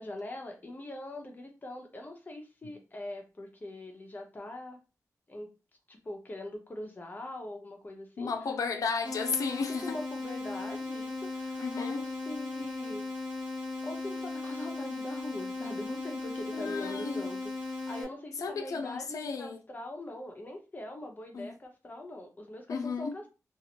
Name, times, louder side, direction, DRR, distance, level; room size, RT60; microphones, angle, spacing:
voice 1, 0.0-4.8 5.3-5.5 5.9-8.3 9.8-13.0 13.8-23.3, left 1 dB, 30° left, 0.8 m, -42 dB
voice 2, 8.2-9.9 11.6-12.0 16.5-17.3 18.4-19.6 21.3-21.5 22.7-23.2, left 5 dB, 75° left, 0.5 m, -34 dB
sound 1, 9.0-18.0, left 3 dB, 15° right, 0.9 m, -37 dB
2.8 x 2.5 x 2.8 m
wide cardioid pair, 125°, 6 cm